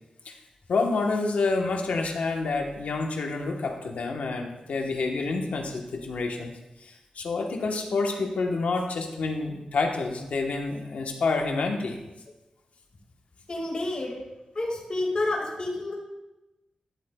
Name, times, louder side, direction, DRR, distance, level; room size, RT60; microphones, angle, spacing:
voice 1, 0.7-12.0, left 3 dB, 85° left, 2 dB, 1.1 m, -28 dB
voice 2, 13.5-14.2 14.5-15.9, left 2 dB, 45° left, -2 dB, 2.0 m, -29 dB
12.0 x 7.7 x 2.3 m, 1.0 s
wide cardioid pair, 80°, 2 cm